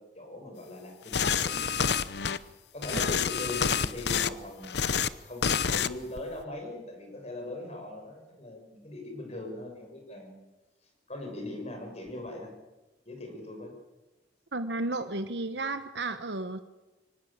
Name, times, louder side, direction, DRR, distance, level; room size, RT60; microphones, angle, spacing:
voice 1, 0.0-2.2 2.7-4.8 5.2-10.3 11.1-12.5 13.0-13.7, left 2 dB, 35° left, 3 dB, 6.5 m, -40 dB
sound 1, 1.1-2.4 2.8-4.3 4.6-5.1 5.4-5.9 6.2-6.4, left 6 dB, 65° left, 0.8 m, -28 dB
voice 2, 14.5-16.6, right 2 dB, 70° right, 9 dB, 1.1 m, -33 dB
24.0 x 18.0 x 8.8 m, 1.1 s
head